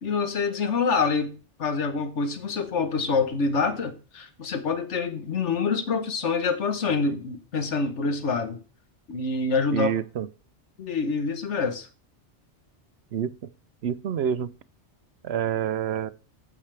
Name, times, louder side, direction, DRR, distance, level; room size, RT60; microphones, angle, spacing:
voice 1, 0.0-1.3 1.6-8.6 9.1-9.9 10.8-11.9, left 4 dB, 85° left, 1.6 m, -26 dB
voice 2, 9.7-10.3 13.1-13.3 13.8-14.5 15.2-16.1, right 9 dB, 70° right, 0.9 m, -27 dB
13.5 x 9.0 x 3.4 m
omnidirectional pair, 1.2 m